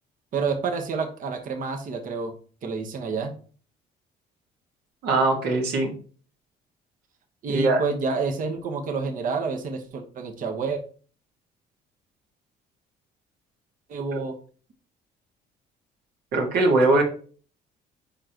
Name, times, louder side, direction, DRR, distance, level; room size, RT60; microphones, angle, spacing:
voice 1, 0.3-2.3 2.6-3.3 7.4-10.8 13.9-14.4, right 4 dB, 55° right, 4 dB, 1.2 m, -29 dB
voice 2, 5.0-6.0 7.5-7.8 16.3-17.0, right 2 dB, 75° right, 1 dB, 2.0 m, -21 dB
7.1 x 5.1 x 3.0 m, 0.41 s
cardioid pair, 110°, 17 cm